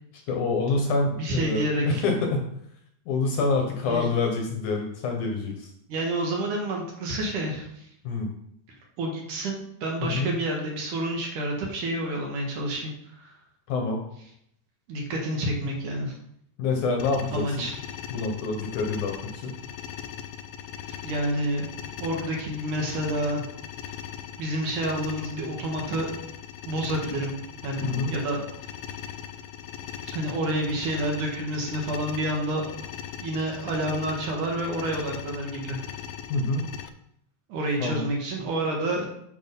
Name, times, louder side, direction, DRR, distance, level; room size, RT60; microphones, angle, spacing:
voice 1, 0.3-2.5 3.1-5.7 8.0-8.3 10.0-10.3 13.7-14.0 16.6-17.7 18.1-19.5 27.8-28.1 36.3-36.7 37.8-38.0, left 3 dB, 65° left, 2 dB, 2.2 m, -26 dB
voice 2, 1.2-2.0 3.9-4.1 5.9-7.9 9.0-13.3 14.9-16.1 17.3-17.7 21.0-21.7 22.0-23.4 24.4-26.3 26.6-27.3 27.6-28.4 30.1-32.7 33.2-35.8 37.5-39.1, right 1 dB, 60° right, 0 dB, 2.8 m, -29 dB
sound 1, 17.0-36.9, left 9 dB, 85° left, 2.5 m, -39 dB
8.8 x 6.4 x 5.3 m, 0.73 s
omnidirectional pair, 4.4 m